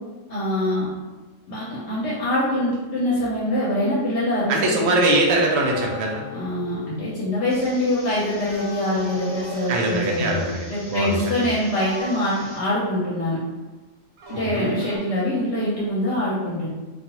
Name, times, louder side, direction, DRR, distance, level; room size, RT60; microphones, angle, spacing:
voice 1, 0.3-0.9 1.5-4.8 6.3-13.4 14.3-16.7, left 1 dB, 65° left, -7 dB, 0.9 m, -24 dB
sound 1, 4.4-10.2, left 15 dB, 40° left, 0.8 m, -45 dB
voice 2, 4.5-6.2 9.7-11.5 14.3-14.8, right 2 dB, 60° right, -1 dB, 0.7 m, -22 dB
sound 2, 5.6-7.0 8.4-10.8 11.8-13.3 14.2-15.0, right 1 dB, 85° right, 1.0 m, -39 dB
sound 3, 7.5-12.6, left 1 dB, 10° left, 0.8 m, -45 dB
2.4 x 2.3 x 2.9 m, 1.2 s
omnidirectional pair, 1.3 m